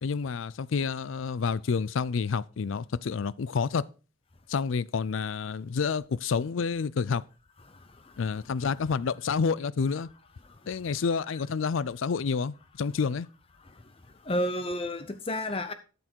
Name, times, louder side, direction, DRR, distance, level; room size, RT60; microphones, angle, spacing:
voice 1, 0.0-3.9 4.5-7.2 8.2-10.1 10.7-13.3, left 5 dB, 70° left, 0.4 m, -29 dB
voice 2, 7.6-8.5 10.4-11.0 13.6-15.7, left 1 dB, 25° left, 0.6 m, -34 dB
12.5 x 6.9 x 4.4 m
head